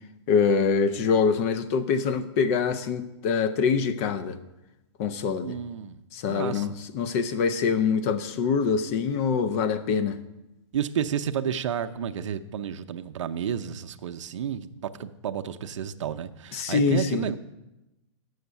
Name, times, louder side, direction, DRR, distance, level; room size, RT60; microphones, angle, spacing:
voice 1, 0.3-4.4 5.0-5.6 6.1-10.2 16.5-17.3, left 5 dB, 30° left, 0.5 m, -24 dB
voice 2, 5.4-6.0 6.3-6.7 10.7-17.4, right 8 dB, 80° right, 0.6 m, -31 dB
7.7 x 6.4 x 8.1 m
hypercardioid pair, 165°, 16 cm